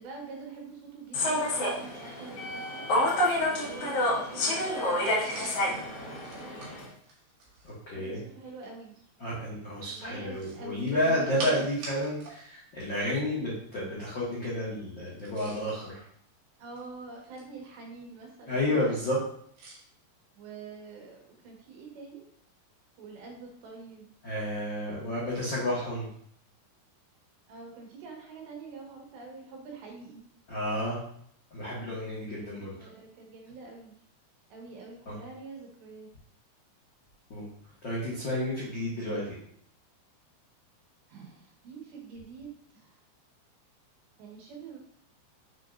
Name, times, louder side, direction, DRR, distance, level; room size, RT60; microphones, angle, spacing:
voice 1, 0.0-2.8 3.5-6.5 7.9-9.0 9.9-11.6 16.6-18.8 20.4-22.3 23.0-24.1 27.5-30.2 32.3-33.9 34.5-36.1 41.1-42.5 42.8-42.9 44.2-44.8, right 4 dB, 75° right, 0 dB, 3.7 m, -46 dB
Human voice / Subway metro underground, 1.1-6.8, left 1 dB, 55° left, 2.5 m, -29 dB
sound 1, 5.2-7.8 10.2-12.4 12.7-12.8 15.1-15.8 16.5-17.7 19.6-19.8, right 2 dB, 60° right, 3.3 m, -44 dB
voice 2, 7.6-8.2 9.2-16.0 18.5-19.2 24.2-26.1 30.5-31.0 31.5-32.9 35.0-35.2 37.3-37.4 37.8-39.4, left 1 dB, 80° left, -7 dB, 1.0 m, -31 dB
7.3 x 6.4 x 2.6 m, 0.63 s
omnidirectional pair, 5.1 m